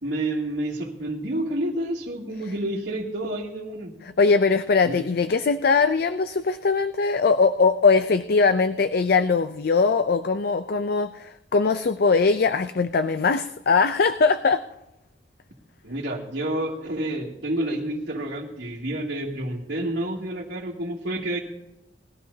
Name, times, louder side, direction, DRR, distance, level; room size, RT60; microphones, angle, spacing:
voice 1, 0.0-4.0 4.8-5.0 15.8-21.4, right 1 dB, 80° right, -6 dB, 2.4 m, -29 dB
voice 2, 4.2-14.6, left 4 dB, 60° left, 10 dB, 0.5 m, -21 dB
20.5 x 14.0 x 2.8 m, 0.92 s
head